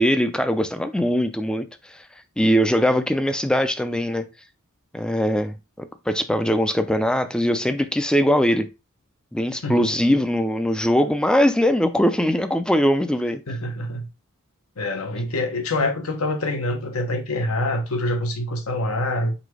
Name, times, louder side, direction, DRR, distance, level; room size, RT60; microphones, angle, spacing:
voice 1, 0.0-2.0 2.4-4.3 4.9-8.7 9.3-13.4, equal, 5° left, 0.4 m, -21 dB
voice 2, 13.5-14.1 14.8-19.3, left 1 dB, 75° left, 1.0 m, -25 dB
4.0 x 2.7 x 4.7 m
head